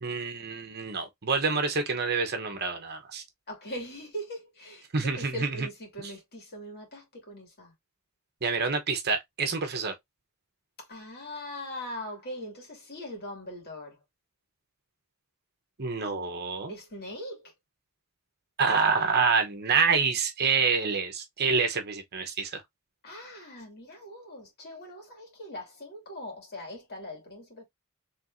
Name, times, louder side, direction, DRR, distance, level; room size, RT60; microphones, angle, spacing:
voice 1, 0.0-3.2 4.9-5.7 6.0-6.1 8.4-9.9 15.8-16.7 18.6-22.6, right 5 dB, 50° right, 0.9 m, -27 dB
voice 2, 3.5-7.7 10.8-14.0 16.7-17.5 23.0-27.6, left 1 dB, 45° left, 2.4 m, -41 dB
4.5 x 3.3 x 2.6 m
head